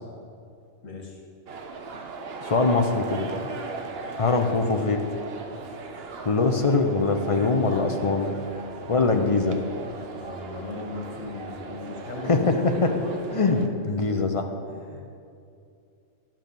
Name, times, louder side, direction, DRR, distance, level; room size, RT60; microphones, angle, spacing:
voice 1, 0.8-1.2 10.1-12.5 12.9-13.2 13.5-13.6 14.1-14.2 14.7-15.0, left 3 dB, 90° left, -1 dB, 1.8 m, -38 dB
sound 1, 1.5-13.7, right 4 dB, 55° right, 1.0 m, -38 dB
voice 2, 2.4-3.3 4.2-5.0 6.2-8.3 8.9-9.6 12.3-12.9 13.3-14.4, left 3 dB, 35° left, 5 dB, 0.6 m, -22 dB
11.5 x 6.0 x 6.9 m, 2.4 s
omnidirectional pair, 1.3 m